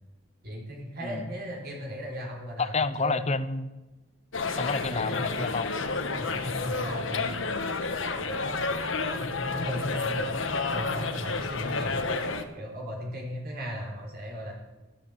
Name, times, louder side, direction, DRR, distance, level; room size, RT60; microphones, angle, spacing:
voice 1, 0.4-3.3 4.9-5.3 6.2-7.3 8.2-8.8 9.1-10.3 10.7-12.0 12.5-14.5, equal, 50° right, 0 dB, 4.4 m, -36 dB
voice 2, 2.6-3.7 4.6-5.7, left 3 dB, 35° left, 14 dB, 0.9 m, -29 dB
sound 1, 4.3-12.4, left 4 dB, 70° left, 1.5 m, -30 dB
14.0 x 13.5 x 7.5 m, 1.1 s
head